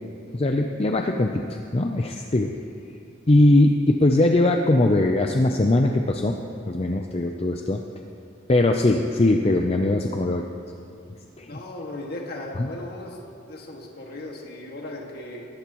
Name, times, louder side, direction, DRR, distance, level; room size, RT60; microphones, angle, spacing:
voice 1, 0.3-2.5 3.3-6.4 6.7-7.8 8.5-10.5 11.4-11.6 12.6-12.7, left 2 dB, 30° left, 3 dB, 0.5 m, -20 dB
voice 2, 11.5-13.2 13.5-15.5, left 2 dB, 50° left, -1 dB, 1.9 m, -37 dB
19.5 x 15.5 x 3.1 m, 2.6 s
head